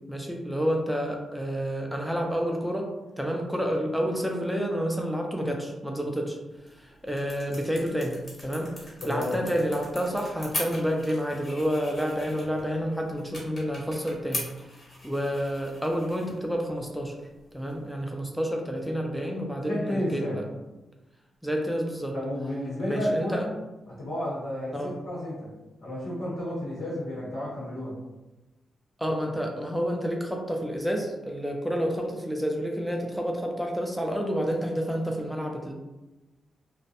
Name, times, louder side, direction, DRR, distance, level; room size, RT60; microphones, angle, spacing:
voice 1, 0.1-2.9 3.2-6.4 6.7-14.5 15.0-17.2 17.5-20.4 21.4-22.1 22.8-23.4 24.7-24.9 29.0-35.7, equal, ahead, 1 dB, 0.3 m, -29 dB
sound 1, 6.5-18.0, left 1 dB, 40° left, 1.0 m, -41 dB
voice 2, 9.0-9.3 19.6-20.4 22.1-23.4 23.9-25.5 25.8-28.0, left 1 dB, 70° left, -7 dB, 0.8 m, -31 dB
2.4 x 2.1 x 2.7 m, 1.1 s
cardioid pair, 120°, 0 cm